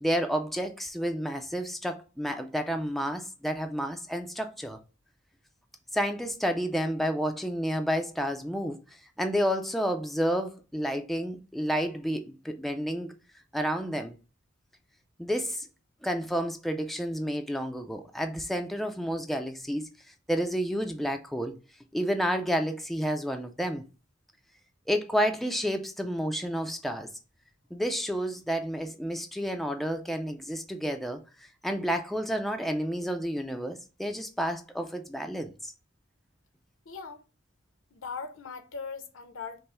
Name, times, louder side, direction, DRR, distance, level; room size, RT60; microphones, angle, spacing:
voice 1, 0.0-4.8 5.9-8.8 9.2-13.1 13.5-14.1 15.2-15.7 16.0-19.9 20.3-21.5 21.9-23.8 24.9-27.1 27.7-35.7, equal, ahead, 0.3 m, -30 dB
voice 2, 36.9-37.2 37.9-39.6, left 5 dB, 75° left, 0.7 m, -39 dB
5.3 x 2.0 x 4.2 m
head